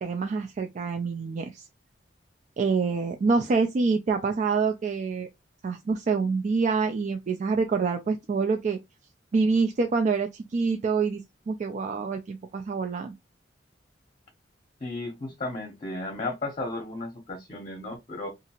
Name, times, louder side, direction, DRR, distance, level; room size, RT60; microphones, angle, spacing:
voice 1, 0.0-1.7 2.6-5.3 5.6-8.8 9.3-13.1, right 4 dB, 40° right, 0.3 m, -26 dB
voice 2, 14.8-18.3, left 2 dB, 35° left, 0.7 m, -34 dB
2.7 x 2.5 x 2.8 m
head